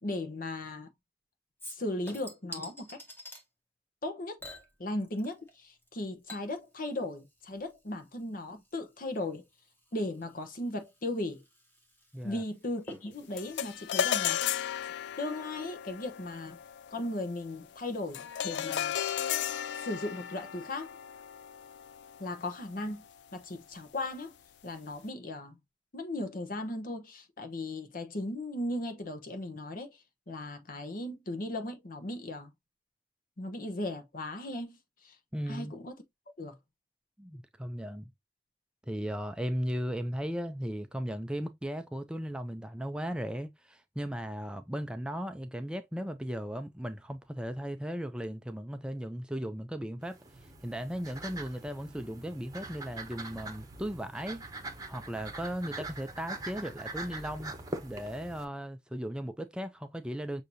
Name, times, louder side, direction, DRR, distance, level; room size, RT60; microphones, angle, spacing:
voice 1, 0.0-0.9 1.7-3.0 4.0-4.4 4.8-9.4 9.9-11.4 12.2-14.4 15.2-16.6 16.9-19.0 19.7-20.9 22.2-23.0 23.3-24.3 24.6-25.6 25.9-30.0 30.3-32.5 33.4-34.8 35.0-35.2 35.5-36.0 36.4-36.6, left 1 dB, 50° left, 0.9 m, -37 dB
Chink clink / Liquid, 1.6-3.4 4.4-5.5 5.8-14.8 15.2-15.3, equal, 10° left, 1.3 m, -50 dB
sound 1, 13.4-22.9, left 10 dB, 75° left, 0.3 m, -35 dB
voice 2, 35.3-35.7 37.2-38.1 38.9-54.4 54.9-57.6 57.8-60.4, equal, 5° right, 0.4 m, -37 dB
sound 2, 50.0-58.4, right 2 dB, 20° right, 0.9 m, -43 dB
6.4 x 2.7 x 2.6 m
head